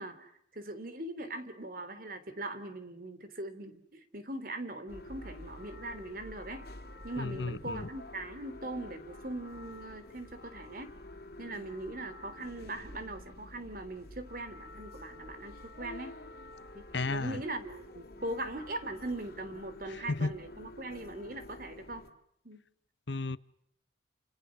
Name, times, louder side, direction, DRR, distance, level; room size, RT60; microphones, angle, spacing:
voice 1, 0.0-6.7 7.0-10.9 11.4-16.2 16.7-22.0 22.4-22.6, right 1 dB, 50° right, 3.3 m, -41 dB
sound 1, 4.9-22.1, left 1 dB, 55° left, 3.0 m, -49 dB
voice 2, 7.2-7.9 16.9-17.4 20.1-20.3 23.1-23.4, left 3 dB, 75° left, 1.0 m, -33 dB
29.5 x 27.0 x 6.3 m
head